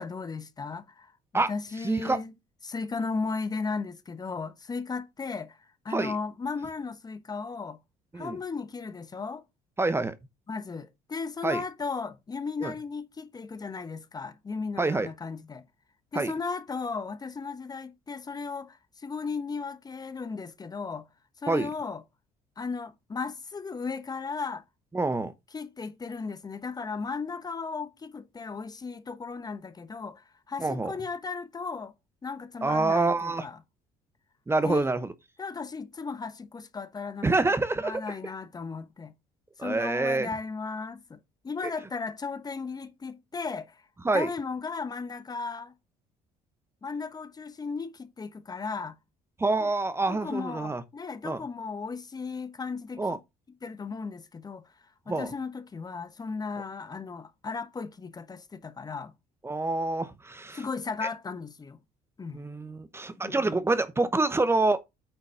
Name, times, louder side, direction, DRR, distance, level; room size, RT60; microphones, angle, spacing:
voice 1, 0.0-2.3 2.6-7.8 8.1-9.4 10.5-15.6 16.1-21.1 21.4-22.0 22.6-24.6 25.5-31.9 32.2-33.6 34.6-34.9 35.4-37.3 37.8-39.1 39.6-41.2 41.4-43.8 44.1-45.7 46.8-49.0 49.6-49.7 50.1-53.0 53.6-54.7 55.1-59.1 60.5-61.8 62.2-62.4 63.2-63.6, left 4 dB, 25° left, 1.0 m, -35 dB
voice 2, 1.8-2.2 5.9-6.1 8.1-8.4 9.8-10.1 11.4-11.6 12.6-12.7 14.8-15.1 16.1-16.3 21.5-21.7 24.9-25.3 30.6-30.9 32.6-33.5 34.5-35.1 37.2-38.0 39.6-40.3 41.6-41.7 44.0-44.3 49.4-50.8 51.2-51.4 53.0-53.2 55.1-55.3 59.4-60.6 62.3-64.8, right 3 dB, 15° right, 1.0 m, -26 dB
9.0 x 4.0 x 5.6 m
supercardioid pair, 90°, 14 cm